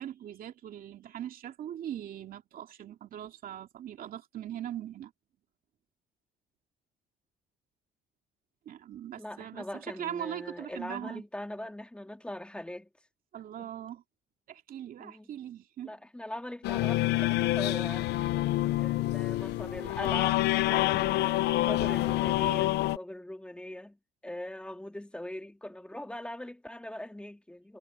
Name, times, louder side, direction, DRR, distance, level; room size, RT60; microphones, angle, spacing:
voice 1, 0.0-5.1 8.6-11.2 13.3-14.0 14.5-16.0, right 10 dB, 60° right, 2.5 m, -40 dB
voice 2, 9.2-12.9 13.6-13.7 15.0-15.3 15.8-18.1 18.8-20.4 20.7-27.8, left 1 dB, 5° left, 2.7 m, -41 dB
sound 1, 16.6-23.0, left 16 dB, 80° left, 0.9 m, -27 dB
cardioid pair, 110°, 17 cm